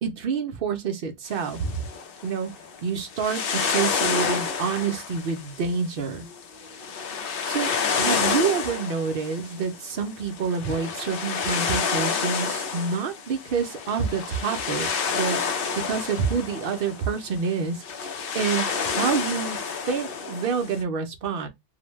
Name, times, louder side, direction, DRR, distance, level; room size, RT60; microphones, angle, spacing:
voice 1, 0.0-1.8 2.2-2.5 2.8-6.3 7.4-15.4 15.8-21.5, right 6 dB, 60° right, 0.7 m, -28 dB
sound 1, 1.3-20.8, left 6 dB, 60° left, 0.7 m, -29 dB
2.6 x 2.1 x 3.0 m
omnidirectional pair, 1.2 m